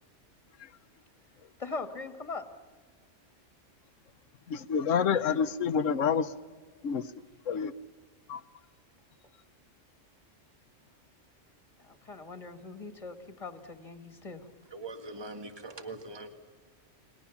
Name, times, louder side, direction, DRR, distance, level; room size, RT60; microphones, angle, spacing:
voice 1, 1.6-2.5 11.8-14.5, left 3 dB, 25° left, 8 dB, 2.0 m, -41 dB
voice 2, 4.5-6.3 6.8-7.1 7.5-7.7 8.3-8.4, left 6 dB, 80° left, 13 dB, 1.3 m, -28 dB
voice 3, 14.7-16.3, right 2 dB, 20° right, 6 dB, 1.8 m, -42 dB
30.0 x 21.0 x 7.2 m, 1.4 s
omnidirectional pair, 1.3 m